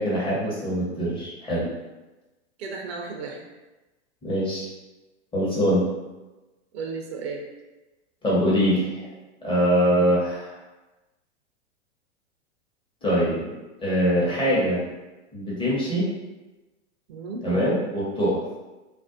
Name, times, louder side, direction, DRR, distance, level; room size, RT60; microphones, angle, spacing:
voice 1, 0.0-1.7 4.2-4.7 5.3-5.9 8.2-9.1 9.4-10.6 13.0-13.5 13.8-14.8 15.3-16.1 17.4-18.4, equal, 15° left, -7 dB, 0.8 m, -23 dB
voice 2, 2.6-3.4 6.7-7.5 9.9-10.2 17.1-17.4, right 4 dB, 60° right, 1 dB, 0.5 m, -34 dB
2.5 x 2.1 x 2.5 m, 1.1 s
hypercardioid pair, 105°, 35 cm